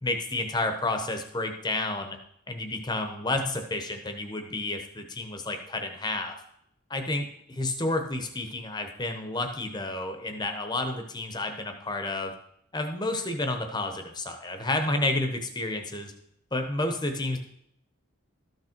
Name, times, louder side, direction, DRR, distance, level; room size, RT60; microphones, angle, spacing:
voice 1, 0.0-2.2 2.5-6.3 6.9-12.3 12.7-16.1 16.5-17.4, left 2 dB, 20° left, 5 dB, 0.9 m, -30 dB
13.0 x 6.3 x 4.4 m, 0.75 s
head